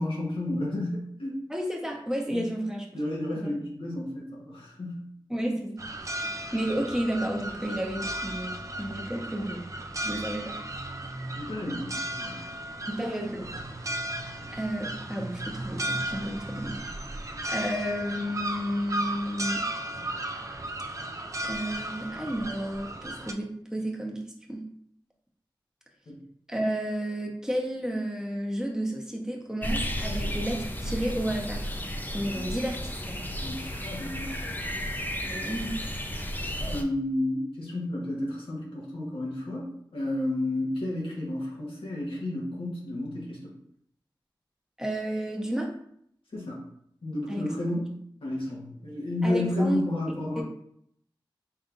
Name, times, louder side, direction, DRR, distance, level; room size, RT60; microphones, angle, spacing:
voice 1, 0.0-1.4 2.3-2.5 2.9-5.0 11.3-12.4 26.1-26.2 32.3-32.5 33.4-34.5 36.7-39.7 39.9-43.5 46.3-46.6 47.0-50.4, left 1 dB, 90° left, -4 dB, 1.3 m, -31 dB
voice 2, 1.5-2.8 5.3-9.6 10.0-10.6 12.9-13.6 14.5-16.8 17.5-19.7 21.4-24.7 26.5-31.7 32.1-33.2 35.2-35.8 44.8-45.7 47.3-47.4 49.2-49.8 50.4-50.5, equal, 5° right, 0 dB, 1.1 m, -32 dB
sound 1, 5.8-23.3, right 1 dB, 40° right, 0.5 m, -35 dB
sound 2, 29.6-36.8, equal, 20° left, 0.6 m, -33 dB
5.3 x 3.4 x 2.6 m, 0.68 s
cardioid pair, 45°, 9 cm